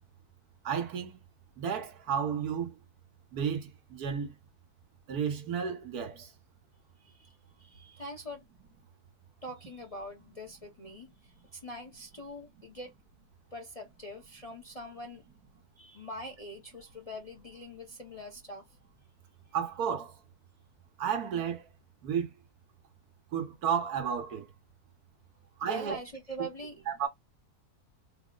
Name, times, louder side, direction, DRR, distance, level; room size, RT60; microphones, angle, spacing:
voice 1, 0.6-1.2 1.6-2.8 3.3-4.3 5.1-6.3 19.5-20.1 21.0-21.6 22.0-22.3 23.3-24.5 25.6-26.0 26.9-27.1, right 7 dB, 75° right, 1.5 m, -32 dB
voice 2, 7.0-8.4 9.4-12.9 13.5-15.2 15.8-18.6 25.6-26.8, equal, 35° left, 0.6 m, -43 dB
4.0 x 2.0 x 3.7 m
omnidirectional pair, 1.6 m